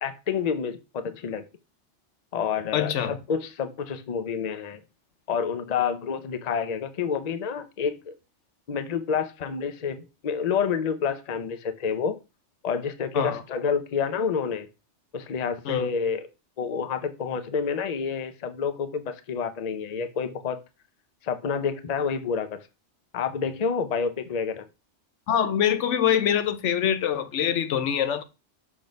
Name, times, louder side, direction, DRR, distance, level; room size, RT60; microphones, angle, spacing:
voice 1, 0.0-1.4 2.3-4.8 5.3-8.1 8.7-12.2 12.6-14.7 15.1-16.3 16.6-20.6 21.2-22.6 23.1-24.7, left 6 dB, 40° left, 0.7 m, -28 dB
voice 2, 2.7-3.1 13.1-13.4 15.6-15.9 25.3-28.2, left 9 dB, 80° left, 1.0 m, -24 dB
6.1 x 3.7 x 5.1 m
omnidirectional pair, 1.2 m